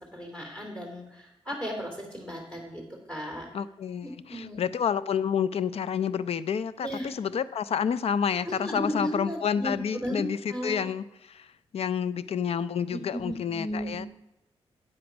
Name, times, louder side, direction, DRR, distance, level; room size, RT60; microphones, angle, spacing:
voice 1, 0.1-2.8 3.1-3.5 4.0-4.6 6.8-7.1 8.4-10.8 12.9-14.0, equal, 10° left, 1 dB, 2.9 m, -35 dB
voice 2, 3.5-11.5 11.7-14.1, left 7 dB, 65° left, 16 dB, 0.4 m, -29 dB
8.7 x 7.7 x 5.2 m, 0.93 s
cardioid pair, 70°, 11 cm